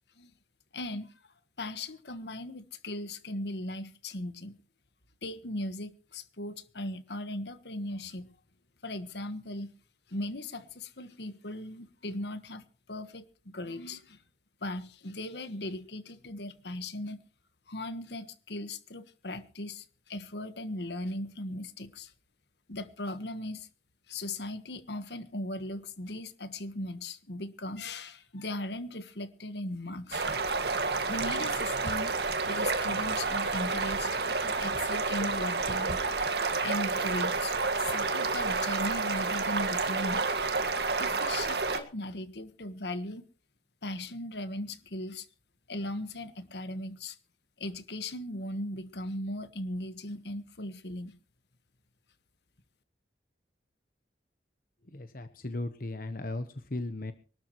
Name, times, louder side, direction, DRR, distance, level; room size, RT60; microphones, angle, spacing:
voice 1, 0.7-1.1 1.6-4.6 5.2-8.3 8.8-9.7 10.1-14.2 14.6-17.2 17.7-22.1 22.7-23.7 24.1-30.2 31.1-32.2 32.4-36.0 36.6-40.3 41.0-43.3 43.8-45.3 45.7-47.2 47.6-51.1, left 1 dB, 70° left, 1.5 m, -38 dB
sound 1, 30.1-41.8, right 4 dB, 65° right, 2.0 m, -30 dB
voice 2, 54.9-57.1, left 2 dB, 50° left, 1.1 m, -36 dB
24.5 x 13.0 x 3.1 m
head